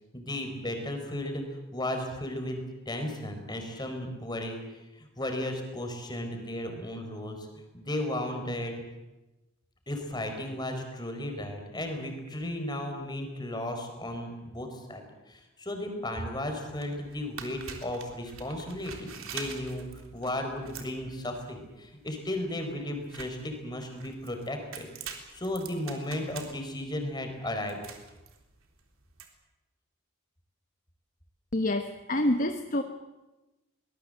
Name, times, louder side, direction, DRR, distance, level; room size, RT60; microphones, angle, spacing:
voice 1, 0.1-1.4 1.7-7.5 7.7-8.7 9.9-19.9 20.1-27.8, left 1 dB, 20° left, 5 dB, 4.5 m, -35 dB
sound 1, 16.7-29.3, right 6 dB, 80° right, 3.5 m, -46 dB
voice 2, 31.5-32.8, left 1 dB, 40° left, 6 dB, 1.2 m, -27 dB
24.0 x 20.0 x 7.9 m, 1.1 s
head